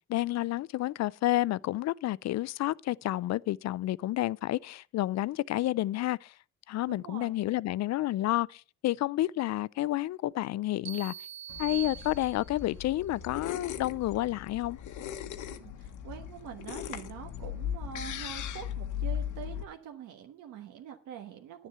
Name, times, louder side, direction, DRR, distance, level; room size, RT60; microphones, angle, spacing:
voice 1, 0.1-6.3 6.7-11.1 11.6-14.8, left 15 dB, 60° left, 0.4 m, -30 dB
voice 2, 6.9-7.3 15.5-21.7, right 8 dB, 85° right, 1.4 m, -45 dB
sound 1, 10.9-12.7, right 10 dB, 65° right, 1.1 m, -43 dB
sound 2, 11.5-19.6, left 9 dB, 75° left, 1.1 m, -38 dB
10.5 x 7.4 x 6.7 m
cardioid pair, 90°, 30 cm